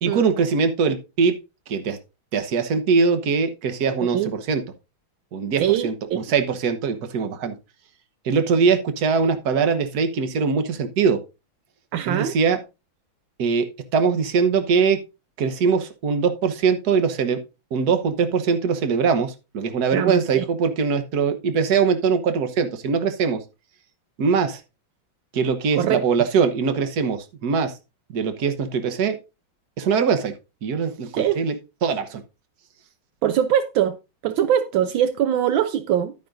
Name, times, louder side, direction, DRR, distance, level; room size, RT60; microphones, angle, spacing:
voice 1, 0.0-1.4 1.7-2.0 2.3-4.6 5.3-7.6 8.2-11.2 12.1-12.6 13.4-15.0 15.4-17.4 17.7-23.4 24.2-24.6 25.3-27.7 28.1-29.2 29.8-30.3 30.6-31.5 31.8-32.2, right 5 dB, 55° right, 1.5 m, -22 dB
voice 2, 5.6-6.2 11.9-12.3 19.9-20.4 25.8-26.0 31.1-31.4 33.2-34.0 34.2-36.1, right 10 dB, 75° right, 1.4 m, -22 dB
11.5 x 9.4 x 2.6 m
omnidirectional pair, 2.2 m